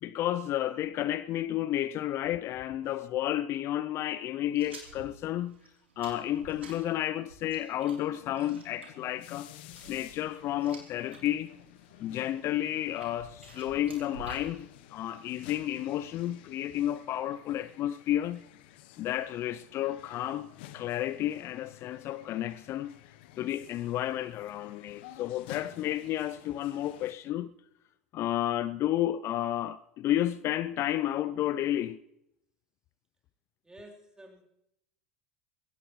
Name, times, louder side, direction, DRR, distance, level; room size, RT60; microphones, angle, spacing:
voice 1, 0.0-5.6 6.0-9.5 9.9-11.5 12.0-18.4 19.0-20.5 20.7-22.9 23.4-27.5 28.1-32.0, left 13 dB, 45° left, 0.5 m, -31 dB
sound 1, 4.5-11.2 11.6-12.1 12.7-14.5, right 3 dB, 85° right, 3.4 m, -50 dB
sound 2, 8.1-27.1, left 13 dB, 65° left, 1.0 m, -52 dB
voice 2, 33.6-34.5, right 1 dB, 10° right, 3.7 m, -51 dB
21.5 x 17.0 x 3.1 m
hypercardioid pair, 75°, 6 cm